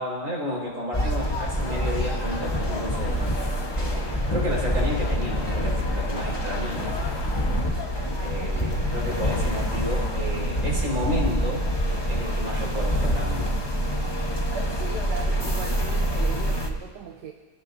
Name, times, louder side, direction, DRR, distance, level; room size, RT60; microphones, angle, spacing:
voice 1, 0.0-3.2 3.8-6.9 8.2-11.6 12.1-13.4, equal, 45° right, -3 dB, 5.4 m, -31 dB
sound 1, 0.9-16.7, equal, 15° left, 1.1 m, -26 dB
sound 2, 1.5-7.6, left 3 dB, 85° left, 2.4 m, -39 dB
voice 2, 14.7-17.3, right 7 dB, 70° right, 4 dB, 1.5 m, -38 dB
26.5 x 16.5 x 2.8 m, 1.4 s
omnidirectional pair, 1.9 m